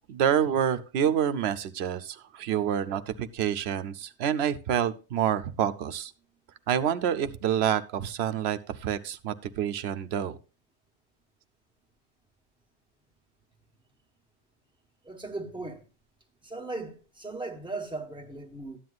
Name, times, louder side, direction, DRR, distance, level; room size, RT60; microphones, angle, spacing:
voice 1, 0.1-6.1 6.7-10.4, right 9 dB, 75° right, 0.9 m, -28 dB
voice 2, 15.0-15.8 16.4-18.8, right 3 dB, 5° right, 1.2 m, -37 dB
13.0 x 9.4 x 2.4 m
omnidirectional pair, 1.1 m